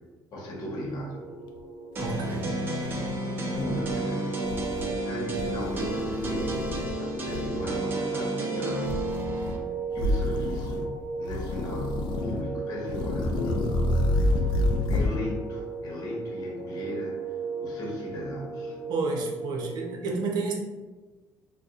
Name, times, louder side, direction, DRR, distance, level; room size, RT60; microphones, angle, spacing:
voice 1, 0.3-1.2 3.5-4.4 4.8-9.6 9.9-13.8 14.4-14.5 14.9-18.8, left 1 dB, 55° left, -4 dB, 1.0 m, -37 dB
sound 1, 0.5-20.0, right 4 dB, 35° left, 0.8 m, -36 dB
sound 2, 1.6-1.7 2.0-3.1 3.5-4.0 4.4-5.0 5.3-6.9 7.2-7.8 8.8-9.6 9.9-10.9 11.2-12.4 12.8-15.2, left 2 dB, 80° left, 0.4 m, -29 dB
sound 3, 1.9-9.6, right 1 dB, 25° right, 0.5 m, -32 dB
voice 2, 2.0-2.5 18.9-20.5, right 3 dB, 65° right, 0 dB, 0.6 m, -30 dB
4.0 x 2.2 x 2.4 m, 1.3 s
cardioid pair, 155°, 8 cm